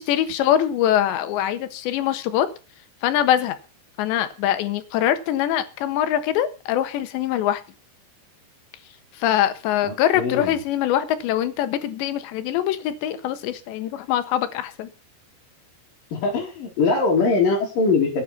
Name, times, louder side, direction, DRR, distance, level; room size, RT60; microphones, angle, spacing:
voice 1, 0.0-2.5 3.0-3.6 4.0-7.6 9.1-14.9, left 11 dB, 70° left, 11 dB, 3.5 m, -23 dB
voice 2, 9.8-10.5 16.1-18.2, left 4 dB, 50° left, -4 dB, 4.0 m, -22 dB
18.5 x 9.4 x 6.0 m, 0.35 s
omnidirectional pair, 5.5 m